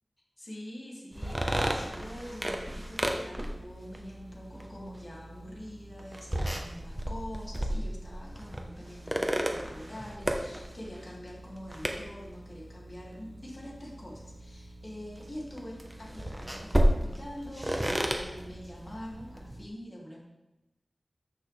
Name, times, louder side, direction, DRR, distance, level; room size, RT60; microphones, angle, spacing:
voice 1, 0.4-20.2, equal, 45° left, -2 dB, 2.6 m, -45 dB
sound 1, 1.1-19.7, equal, 15° right, 1.1 m, -34 dB
13.5 x 6.5 x 3.4 m, 0.97 s
wide cardioid pair, 65°, 0 cm